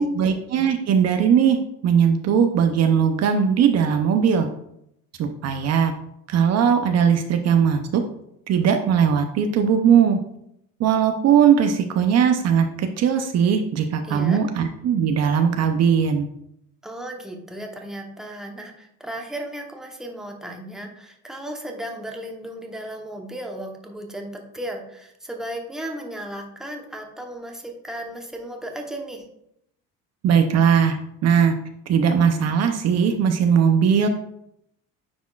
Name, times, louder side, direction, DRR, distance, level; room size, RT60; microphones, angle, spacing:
voice 1, 0.0-1.6 1.8-4.5 5.2-5.9 6.3-8.0 8.5-10.2 10.8-16.3 30.2-31.0 31.2-31.6 31.9-34.1, right 7 dB, 55° right, 6 dB, 0.6 m, -19 dB
voice 2, 14.0-14.4 16.8-29.3, right 1 dB, ahead, 1 dB, 0.9 m, -35 dB
9.6 x 4.2 x 2.4 m, 0.75 s
cardioid pair, 120°, 32 cm